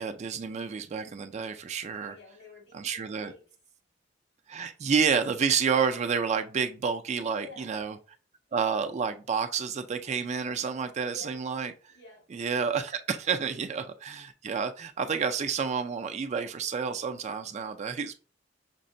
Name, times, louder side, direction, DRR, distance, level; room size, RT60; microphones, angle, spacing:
voice 1, 0.0-2.1 2.7-3.3 4.5-8.0 8.5-11.7 12.3-18.1, right 6 dB, 35° right, 0.3 m, -29 dB
voice 2, 2.0-3.6 7.1-8.0 11.0-11.4 11.9-12.2 13.5-13.6, left 3 dB, 85° left, 1.8 m, -49 dB
5.9 x 2.1 x 2.6 m
head